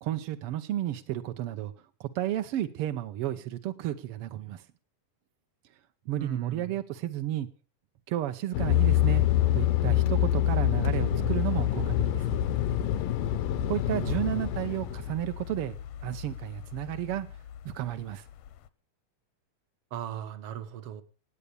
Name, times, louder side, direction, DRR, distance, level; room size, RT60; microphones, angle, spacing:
voice 1, 0.0-1.7 2.0-4.6 6.1-7.5 8.1-9.3 9.5-12.4 13.7-15.7 16.0-17.3 17.6-18.2, right 13 dB, 85° right, 1.3 m, -32 dB
voice 2, 6.2-6.7 13.9-14.4 19.9-21.0, right 10 dB, 65° right, 1.5 m, -38 dB
Fixed-wing aircraft airplane, 8.5-15.2, left 10 dB, 90° left, 2.6 m, -30 dB
sound 1, 8.7-18.0 18.5-18.6, left 13 dB, 70° left, 1.6 m, -29 dB
18.5 x 8.3 x 6.8 m
omnidirectional pair, 3.8 m